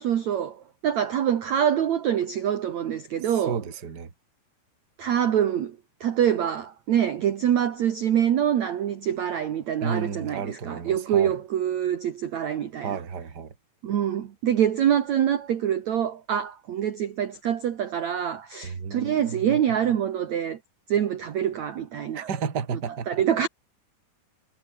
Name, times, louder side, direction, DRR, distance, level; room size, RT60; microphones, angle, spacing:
voice 1, 0.0-3.6 5.0-13.0 13.8-20.6 20.9-22.3 23.1-23.5, right 9 dB, 55° right, 2.3 m, -25 dB
voice 2, 3.3-4.1 9.8-11.4 12.8-13.5 18.6-20.0 22.1-23.2, right 6 dB, 30° right, 2.3 m, -32 dB
omnidirectional pair, 4.8 m